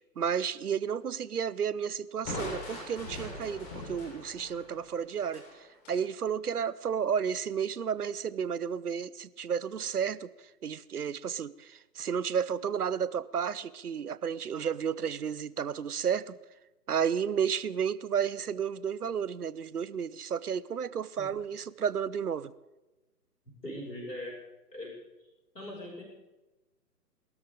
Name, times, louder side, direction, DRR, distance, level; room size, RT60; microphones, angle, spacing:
voice 1, 0.2-5.4 5.9-10.3 10.6-16.4 16.9-22.5, right 7 dB, 65° right, 18 dB, 0.8 m, -32 dB
Crushing, 2.2-6.0, left 2 dB, 25° left, 4.4 m, -41 dB
voice 2, 23.6-24.3 24.7-24.9 25.5-26.0, left 1 dB, 90° left, -4 dB, 6.5 m, -40 dB
22.0 x 13.5 x 3.8 m, 1.1 s
figure-of-eight pair, 130°, 48 cm